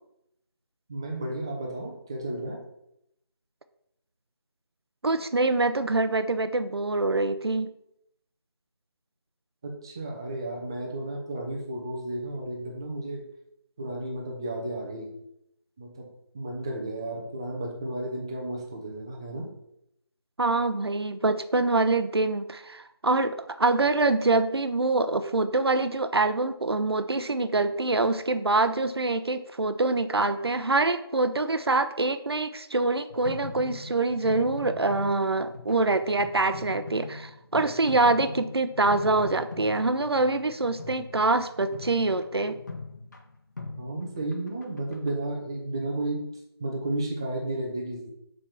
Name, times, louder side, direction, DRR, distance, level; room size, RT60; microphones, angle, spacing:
voice 1, 0.9-2.6 9.6-13.2 13.8-15.2 15.8-16.1 16.3-19.5 43.8-46.3 46.6-48.1, right 1 dB, 10° right, 0 dB, 0.6 m, -33 dB
voice 2, 5.0-7.7 20.4-42.6, right 3 dB, 70° right, 11 dB, 0.8 m, -25 dB
sound 1, 33.1-45.2, left 3 dB, 45° left, 1.3 m, -41 dB
7.0 x 4.8 x 5.8 m, 0.78 s
figure-of-eight pair, 165°, 14 cm